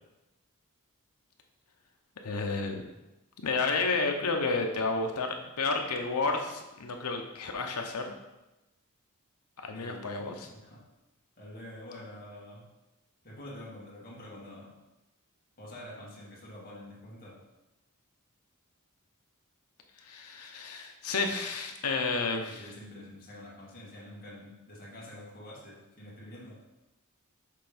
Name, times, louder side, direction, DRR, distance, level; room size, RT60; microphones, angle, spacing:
voice 1, 2.2-2.8 3.4-8.1 9.6-10.5 20.0-22.7, left 3 dB, 90° left, 3 dB, 0.9 m, -31 dB
voice 2, 9.7-10.8 11.4-12.7 13.2-14.7 15.6-17.4 22.4-26.6, left 1 dB, 40° left, -6 dB, 2.0 m, -47 dB
6.6 x 3.5 x 5.1 m, 1.0 s
head